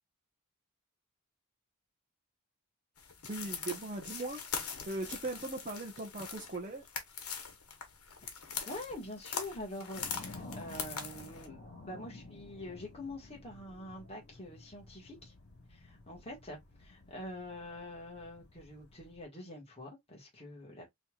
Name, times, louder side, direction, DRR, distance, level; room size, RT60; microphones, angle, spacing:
sound 1, 3.0-11.5, left 6 dB, 90° left, 1.1 m, -42 dB
voice 1, 3.3-4.4 4.8-6.9, right 2 dB, 35° right, 0.8 m, -39 dB
voice 2, 8.6-15.3 15.7-20.9, left 1 dB, 30° left, 1.6 m, -45 dB
sound 2, 9.9-19.3, left 2 dB, 55° left, 1.5 m, -52 dB
4.1 x 3.2 x 2.4 m
head